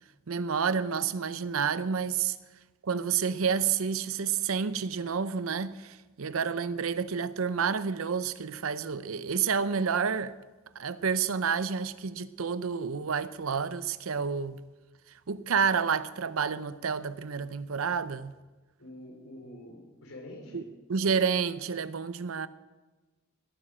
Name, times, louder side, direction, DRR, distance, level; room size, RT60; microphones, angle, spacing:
voice 1, 0.3-2.4 2.8-10.3 10.8-14.6 15.3-18.3 20.5-20.6 20.9-22.5, right 6 dB, 90° right, 0.6 m, -29 dB
voice 2, 18.8-20.7, left 1 dB, 80° left, 4.0 m, -46 dB
19.5 x 9.0 x 6.2 m
head